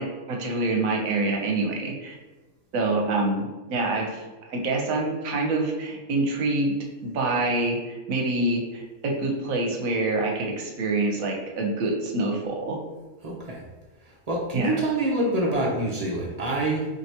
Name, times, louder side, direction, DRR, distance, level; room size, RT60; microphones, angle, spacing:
voice 1, 0.0-2.1 2.7-4.2 4.5-6.7 7.0-12.8 14.5-14.7, right 2 dB, 75° right, 1 dB, 1.1 m, -26 dB
voice 2, 13.2-13.6 14.3-16.9, right 1 dB, 50° right, -3 dB, 0.4 m, -26 dB
4.6 x 2.7 x 2.8 m, 1.2 s
omnidirectional pair, 1.5 m